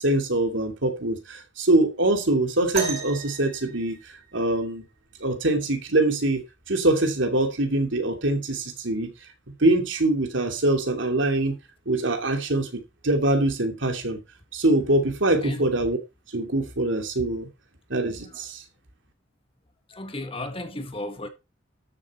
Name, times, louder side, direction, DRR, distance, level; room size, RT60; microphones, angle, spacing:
voice 1, 0.0-4.0 4.3-4.8 5.2-9.1 9.6-11.6 11.9-14.2 14.5-16.0 16.3-17.5 17.9-18.6, right 2 dB, 80° right, 2.7 m, -24 dB
sound 1, 2.7-4.6 6.3-6.4 7.2-7.4 8.3-8.4, right 4 dB, 35° right, 4.6 m, -34 dB
voice 2, 19.9-21.3, left 1 dB, 30° left, 1.6 m, -34 dB
13.0 x 7.2 x 4.4 m
head